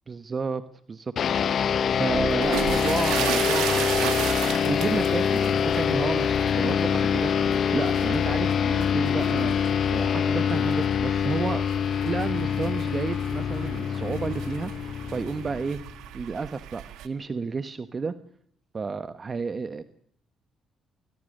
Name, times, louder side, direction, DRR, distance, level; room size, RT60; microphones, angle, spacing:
voice 1, 0.1-0.6 0.9-1.6 2.0-9.6 9.9-11.6 12.0-15.8 16.1-18.1 18.7-19.8, right 4 dB, 35° right, 12 dB, 1.3 m, -31 dB
sound 1, 1.2-16.0, left 7 dB, 60° left, 0.9 m, -25 dB
sound 2, 2.1-17.1, right 12 dB, 90° right, 2.0 m, -36 dB
26.5 x 20.5 x 6.6 m, 0.66 s
cardioid pair, 90°, 0 cm